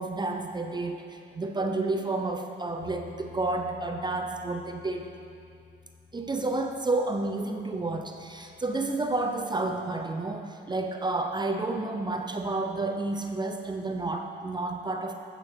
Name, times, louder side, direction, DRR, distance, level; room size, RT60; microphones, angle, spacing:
voice 1, 0.0-5.1 6.1-15.1, right 2 dB, 20° right, 4 dB, 0.6 m, -30 dB
sound 1, 2.8-9.1, left 5 dB, 80° left, 1.4 m, -51 dB
9.3 x 6.6 x 6.1 m, 2.4 s
cardioid pair, 90°, 20 cm